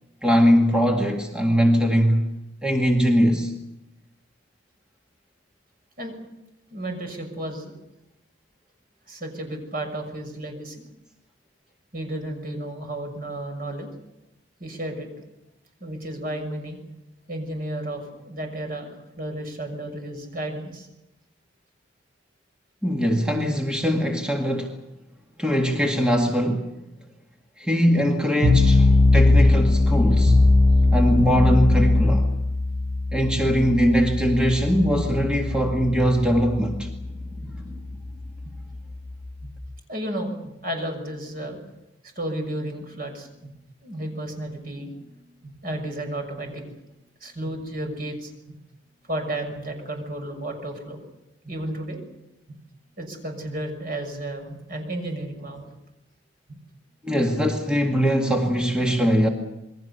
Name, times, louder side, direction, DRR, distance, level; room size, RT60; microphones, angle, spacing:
voice 1, 0.2-2.3 2.6-3.5 22.8-24.7 25.4-26.7 27.6-30.4 30.9-32.3 33.1-36.9 57.0-59.3, equal, 5° right, 1.9 m, -21 dB
voice 2, 6.7-7.7 9.1-10.8 11.9-13.9 14.6-15.1 15.8-16.8 17.3-20.9 37.0-38.8 39.4-39.5 39.9-40.3 40.6-41.6 42.1-43.5 43.8-46.6 47.2-48.3 49.1-51.0 51.4-52.0 52.5-52.6 53.0-55.7 56.5-56.6, right 1 dB, 50° right, 6.3 m, -33 dB
sound 1, 28.4-39.6, left 2 dB, 35° right, 2.7 m, -20 dB
28.0 x 21.5 x 6.9 m
head